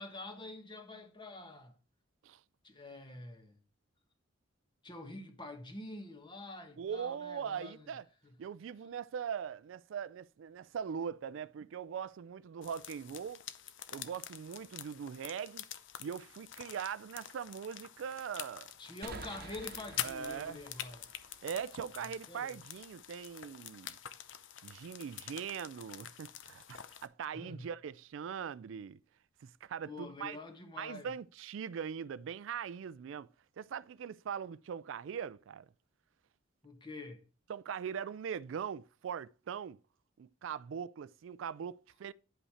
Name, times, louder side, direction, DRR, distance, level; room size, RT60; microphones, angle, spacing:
voice 1, 0.0-1.8 2.6-3.6 4.8-7.9 8.2-8.3 18.8-21.1 22.0-22.6 27.3-27.7 29.8-31.1 36.6-37.2, left 2 dB, 25° left, 1.4 m, -47 dB
voice 2, 6.8-8.0 8.4-13.4 13.9-15.6 16.0-18.7 20.0-20.6 21.4-24.0 24.6-29.0 29.4-30.4 30.8-33.3 33.6-35.7 37.5-39.8 40.2-42.1, right 7 dB, 75° right, 0.3 m, -41 dB
sound 1, 12.6-27.1, left 10 dB, 70° left, 0.7 m, -46 dB
sound 2, 19.0-22.5, right 4 dB, 50° right, 1.0 m, -51 dB
9.8 x 5.5 x 4.2 m
head